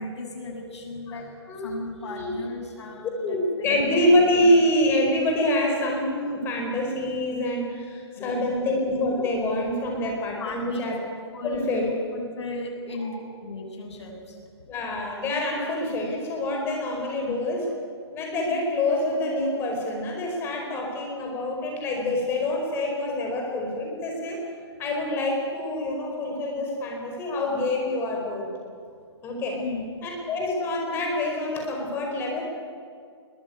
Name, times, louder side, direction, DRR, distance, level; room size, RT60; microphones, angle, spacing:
voice 1, 0.0-1.3 1.6-3.8 8.1-8.7 10.3-10.9 11.3-11.8 12.1-14.4 17.3-17.4 29.5-30.1, left 2 dB, 75° left, 1 dB, 7.9 m, -36 dB
voice 2, 1.1-1.7 2.0-2.4 3.2-11.0 11.4-11.9 13.0-13.1 14.7-17.6 18.1-24.4 24.8-28.5 29.2-29.6 30.0-32.4, left 1 dB, 15° left, 1 dB, 4.9 m, -26 dB
22.0 x 19.5 x 9.4 m, 2.2 s
hypercardioid pair, 165°, 15 cm